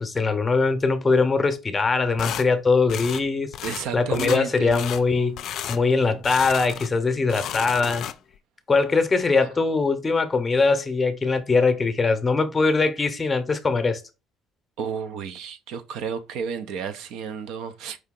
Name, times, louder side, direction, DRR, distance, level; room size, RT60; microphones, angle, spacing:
voice 1, 0.0-3.5 3.9-8.1 8.7-14.0, left 4 dB, 20° left, 0.7 m, -22 dB
sound 1, 2.2-2.5 2.9-3.2 3.5-3.8 4.1-4.4 4.7-5.0 5.4-5.8 6.2-6.9 7.2-8.4, left 10 dB, 55° left, 0.4 m, -33 dB
voice 2, 3.6-5.3 5.7-5.8 9.4-9.5 14.8-18.0, right 7 dB, 70° right, 0.6 m, -32 dB
4.7 x 2.7 x 3.7 m
cardioid pair, 140°, 0 cm